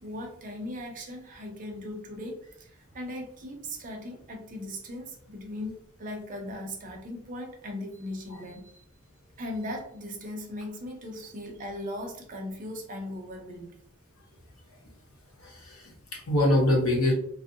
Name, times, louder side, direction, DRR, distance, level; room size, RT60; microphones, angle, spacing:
voice 1, 0.0-8.8 9.4-13.8, left 1 dB, 40° right, 2 dB, 0.6 m, -38 dB
voice 2, 15.4-17.1, left 1 dB, 85° left, -1 dB, 0.9 m, -24 dB
2.5 x 2.0 x 2.6 m, 0.67 s
head